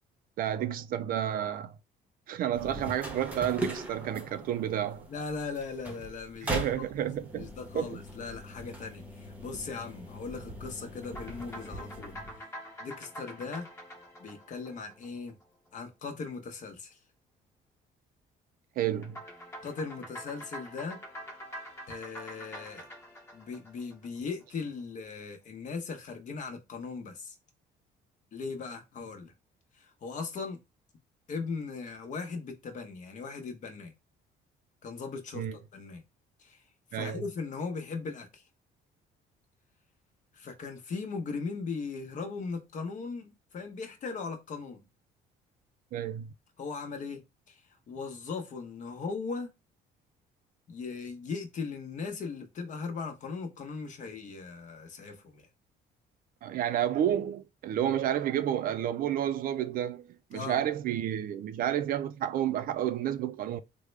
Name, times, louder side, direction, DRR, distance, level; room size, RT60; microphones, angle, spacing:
voice 1, 0.4-1.7 2.3-5.1 6.4-7.5 7.7-8.0 18.8-19.2 35.4-35.6 36.9-37.2 45.9-46.3 56.4-60.0 60.3-63.6, right 10 dB, 60° right, 0.4 m, -30 dB
sound 1, 2.5-12.4, equal, 10° right, 0.8 m, -40 dB
voice 2, 5.1-7.0 7.3-12.1 12.8-13.7 14.2-15.3 15.7-17.0 19.6-21.0 21.9-22.9 23.3-27.3 28.3-29.3 29.8-30.6 31.3-33.9 34.8-36.0 36.4-36.6 36.9-38.4 40.3-44.8 46.6-47.2 47.5-47.6 47.9-49.5 50.7-55.5 60.3-60.6, left 4 dB, 50° left, 0.9 m, -38 dB
sound 2, 11.0-15.7 19.0-24.4, equal, 15° left, 1.0 m, -46 dB
3.5 x 2.2 x 3.2 m
cardioid pair, 110°, 17 cm